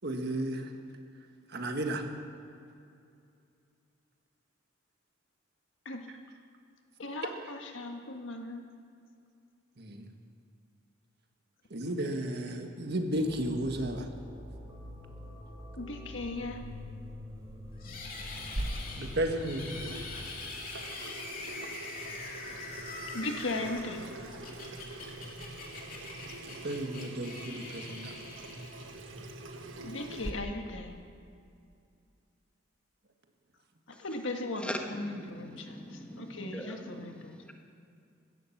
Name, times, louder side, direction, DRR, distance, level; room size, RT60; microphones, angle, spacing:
voice 1, 0.0-0.7 1.5-2.1 9.8-10.1 11.7-14.1 17.8-18.0 19.0-19.6 26.4-28.2, right 1 dB, 55° right, 5 dB, 1.5 m, -33 dB
voice 2, 7.0-8.6 15.8-16.6 23.1-24.0 29.8-31.0 33.9-37.3, left 2 dB, 75° left, 3 dB, 1.7 m, -38 dB
sound 1, 13.1-20.3, left 1 dB, 20° right, 3.1 m, -45 dB
sound 2, 17.8-29.1, left 3 dB, 45° left, 2.6 m, -44 dB
Water tap faucet / Sink (filling or washing), 18.6-30.3, right 1 dB, 75° right, 1.5 m, -43 dB
voice 3, 34.6-37.5, equal, 5° left, 3 dB, 1.4 m, -41 dB
16.0 x 12.0 x 7.2 m, 2.5 s
head